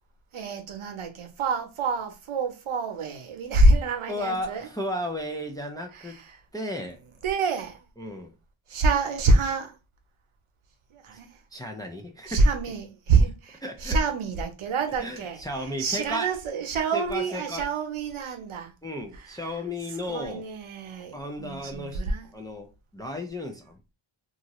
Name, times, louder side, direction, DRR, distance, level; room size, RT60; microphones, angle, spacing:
voice 1, 0.3-4.7 5.9-6.2 7.2-7.8 8.7-9.8 10.9-11.3 12.3-15.4 15.8-18.7 20.1-22.3, right 3 dB, 80° right, 0.8 m, -26 dB
voice 2, 4.1-6.2 6.5-7.0 8.0-8.3 11.5-12.4 13.6-14.0 15.0-16.3 16.9-17.7 18.8-20.5 21.1-22.0 22.3-23.8, left 1 dB, 10° left, 0.3 m, -34 dB
2.6 x 2.4 x 3.0 m
wide cardioid pair, 135°, 49 cm